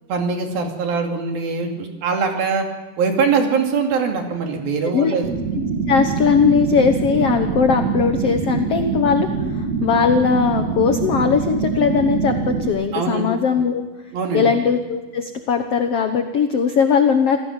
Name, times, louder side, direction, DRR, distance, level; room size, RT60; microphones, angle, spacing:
voice 1, 0.1-2.7 3.0-5.3 12.9-13.3 14.1-14.5, right 5 dB, 70° right, 3 dB, 4.3 m, -22 dB
voice 2, 4.8-5.1 5.9-13.8 14.3-17.4, left 6 dB, 85° left, 7 dB, 1.3 m, -19 dB
sound 1, 5.2-12.7, right 5 dB, 45° right, 3.5 m, -24 dB
27.0 x 17.0 x 7.4 m, 1.2 s
omnidirectional pair, 4.5 m